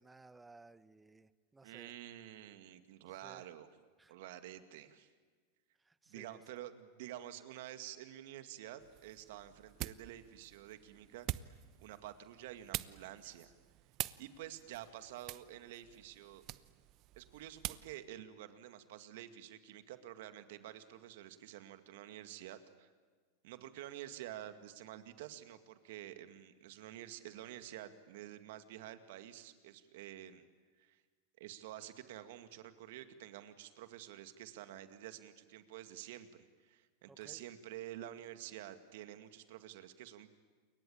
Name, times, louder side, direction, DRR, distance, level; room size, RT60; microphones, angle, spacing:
voice 1, 0.0-1.9 3.1-3.5 4.0-4.1 5.8-6.4 37.1-37.4, right 3 dB, 10° right, 15 dB, 1.2 m, -59 dB
voice 2, 1.6-3.7 4.1-5.1 6.1-11.5 11.8-13.5 14.2-16.4 17.2-22.9 23.4-30.4 30.8-31.0 31.4-40.3, right 12 dB, 65° right, 10 dB, 2.2 m, -49 dB
sound 1, 8.8-18.0, right 16 dB, 45° right, 0.9 m, -46 dB
29.0 x 23.0 x 8.8 m, 1.5 s
hypercardioid pair, 105°, 0 cm